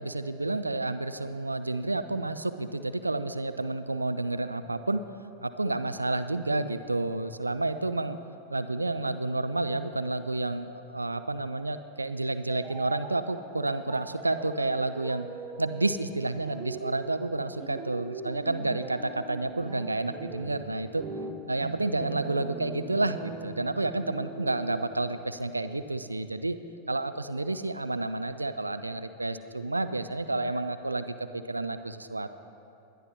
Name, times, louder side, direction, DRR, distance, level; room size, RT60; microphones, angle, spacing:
voice 1, 0.0-5.0 5.4-8.2 8.5-15.3 15.6-21.1 21.5-26.6 26.9-32.4, right 2 dB, 80° right, 11 dB, 0.4 m, -30 dB
sound 1, 12.5-25.4, right 5 dB, 35° right, 0.8 m, -42 dB
20.5 x 11.0 x 3.0 m, 2.7 s
figure-of-eight pair, 90°, 0 cm